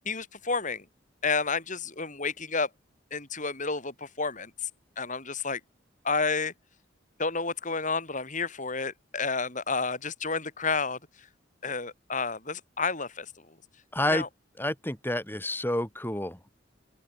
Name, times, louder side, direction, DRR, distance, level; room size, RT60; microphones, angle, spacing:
voice 1, 0.0-0.9 1.2-2.7 3.1-4.7 5.0-5.6 6.0-6.5 7.2-11.0 11.6-13.5 14.1-14.3, left 4 dB, 40° left, 6.3 m, -30 dB
voice 2, 13.9-14.2 14.6-16.5, left 1 dB, 10° left, 5.3 m, -29 dB
open air
head